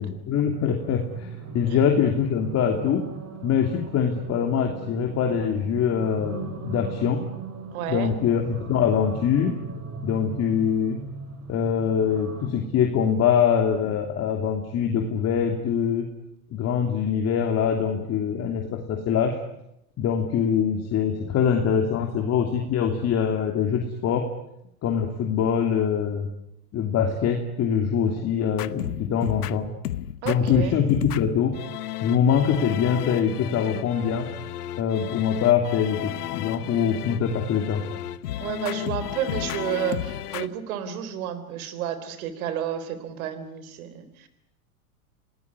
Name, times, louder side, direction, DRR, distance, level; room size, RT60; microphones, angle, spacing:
voice 1, 0.0-3.0 3.4-7.2 7.9-9.6 10.0-11.0 11.5-16.1 16.5-19.4 20.0-24.3 24.8-26.3 26.7-29.7 30.2-31.6 32.0-34.3 34.8-37.8, left 7 dB, 35° left, 3 dB, 3.0 m, -23 dB
sound 1, 0.6-12.5, right 4 dB, 35° right, 6.9 m, -39 dB
voice 2, 7.7-8.1 30.2-30.8 38.4-44.3, right 9 dB, 65° right, 12 dB, 4.2 m, -31 dB
sound 2, 28.6-40.5, left 13 dB, 85° left, 1.1 m, -33 dB
27.5 x 19.0 x 9.9 m, 0.83 s
hypercardioid pair, 120°, 45 cm